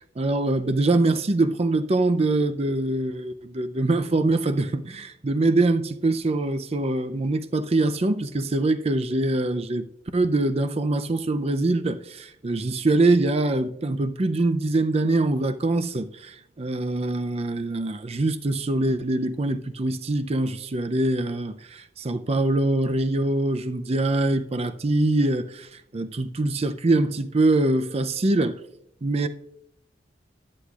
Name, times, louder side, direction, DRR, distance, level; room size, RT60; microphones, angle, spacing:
voice 1, 0.0-9.9 10.1-28.6 29.0-29.3, right 2 dB, 35° right, 0.5 m, -24 dB
14.0 x 9.9 x 2.4 m
head